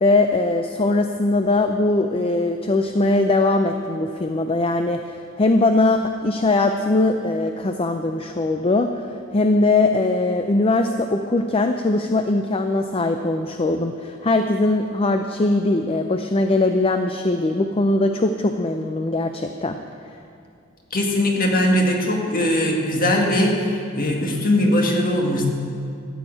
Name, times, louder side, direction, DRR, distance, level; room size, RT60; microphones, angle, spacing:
voice 1, 0.0-19.8, left 2 dB, 25° left, 6 dB, 0.5 m, -21 dB
voice 2, 20.9-25.5, left 1 dB, 40° left, 0 dB, 1.7 m, -20 dB
14.0 x 6.3 x 8.9 m, 2.5 s
head